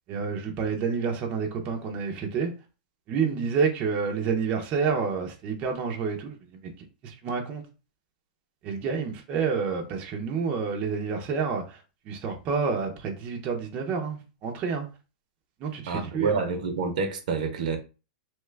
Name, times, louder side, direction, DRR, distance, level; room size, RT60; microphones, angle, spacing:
voice 1, 0.1-2.5 3.1-7.7 8.6-14.9 15.6-16.4, right 5 dB, 30° right, 0.6 m, -29 dB
voice 2, 15.9-17.8, right 4 dB, 70° right, 0.7 m, -28 dB
2.9 x 2.3 x 3.2 m
hypercardioid pair, 145°, 4 cm